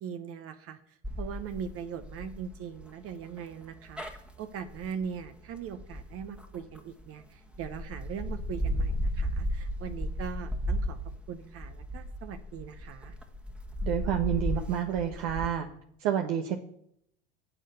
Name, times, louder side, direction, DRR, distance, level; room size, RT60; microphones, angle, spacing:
voice 1, 0.0-11.0 11.3-13.2, right 7 dB, 40° right, 8 dB, 1.1 m, -40 dB
sound 1, 1.0-7.0 7.5-15.5, equal, 5° right, 1.6 m, -35 dB
voice 2, 13.8-15.7 16.0-16.6, right 9 dB, 60° right, 4 dB, 1.3 m, -29 dB
9.9 x 6.6 x 8.2 m, 0.71 s
hypercardioid pair, 85°, 35 cm